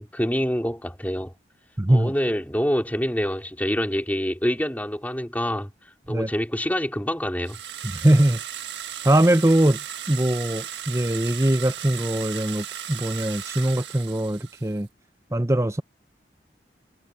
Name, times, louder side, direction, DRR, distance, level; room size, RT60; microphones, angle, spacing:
voice 1, 0.0-1.3 1.9-5.7 6.1-7.6, equal, 10° left, 4.4 m, -26 dB
voice 2, 1.8-2.1 6.1-6.3 7.9-8.4 9.0-9.8 10.1-14.9 15.3-15.8, right 1 dB, 15° right, 0.8 m, -21 dB
sound 1, 7.4-14.8, right 10 dB, 85° right, 1.5 m, -36 dB
head